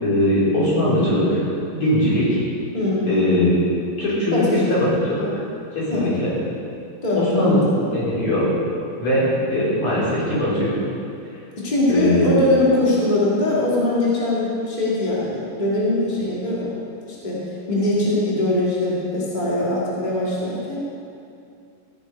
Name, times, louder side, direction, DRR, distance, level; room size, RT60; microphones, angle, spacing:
voice 1, 0.0-1.4 1.7-2.4 3.0-3.5 4.0-4.4 4.7-5.2 5.7-6.3 7.2-8.5 9.0-10.7 11.9-12.3, left 1 dB, 30° left, -8 dB, 4.4 m, -20 dB
voice 2, 2.7-3.1 4.3-4.8 5.2-5.3 5.9-6.1 7.0-7.6 11.6-16.7 17.1-20.8, left 1 dB, 80° left, -7 dB, 0.4 m, -22 dB
14.5 x 9.2 x 5.3 m, 2.4 s
omnidirectional pair, 5.4 m